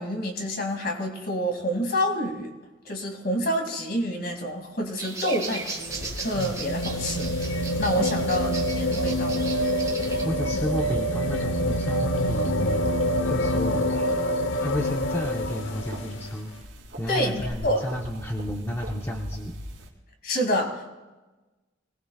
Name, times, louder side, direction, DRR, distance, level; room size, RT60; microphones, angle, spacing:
voice 1, 0.0-2.5 2.8-7.3 7.8-9.4 17.1-17.9 20.2-20.9, equal, 55° left, 2 dB, 2.6 m, -28 dB
sound 1, 5.0-10.2, right 4 dB, 15° right, 1.6 m, -37 dB
sound 2, 5.3-16.3 17.5-17.6, equal, 75° left, 1.0 m, -26 dB
voice 2, 10.2-12.9 13.2-14.1 14.6-16.5 17.0-19.5, equal, 15° left, 0 dB, 1.0 m, -31 dB
sound 3, 14.8-19.9, equal, 80° right, 3.0 m, -41 dB
24.5 x 18.5 x 2.4 m, 1.2 s
head